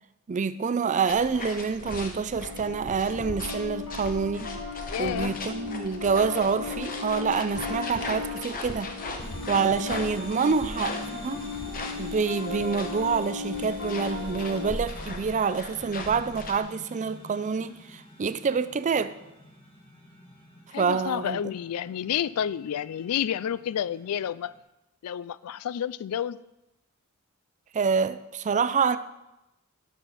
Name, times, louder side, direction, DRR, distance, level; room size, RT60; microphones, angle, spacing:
voice 1, 0.3-4.5 5.0-8.9 9.5-11.4 12.0-19.2 20.8-21.4 27.7-29.0, right 5 dB, 35° right, 0.4 m, -27 dB
sound 1, 1.0-16.6, left 2 dB, 40° left, 1.1 m, -38 dB
Piano, 2.3-14.8, left 5 dB, 65° left, 1.3 m, -37 dB
voice 2, 4.9-5.4 20.7-24.5 25.0-26.4, left 9 dB, 90° left, 0.3 m, -30 dB
sound 2, 9.2-24.6, equal, 25° left, 1.6 m, -46 dB
13.0 x 6.4 x 4.1 m
head